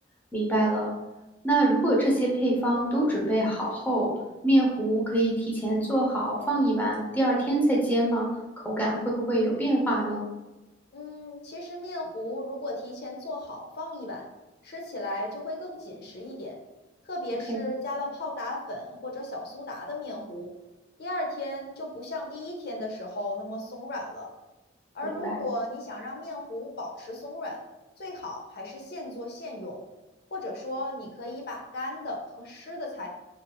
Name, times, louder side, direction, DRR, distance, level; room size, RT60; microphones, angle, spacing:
voice 1, 0.3-0.9 1.4-4.1 4.4-8.3 8.6-10.2 17.5-17.6 25.0-25.4, right 1 dB, 10° left, -4 dB, 0.7 m, -25 dB
voice 2, 10.9-14.2 14.6-16.6 17.0-20.5 21.0-24.3 24.9-27.6 28.0-29.8 30.3-33.1, left 1 dB, 55° left, 0 dB, 0.6 m, -35 dB
2.8 x 2.7 x 2.3 m, 1.1 s
head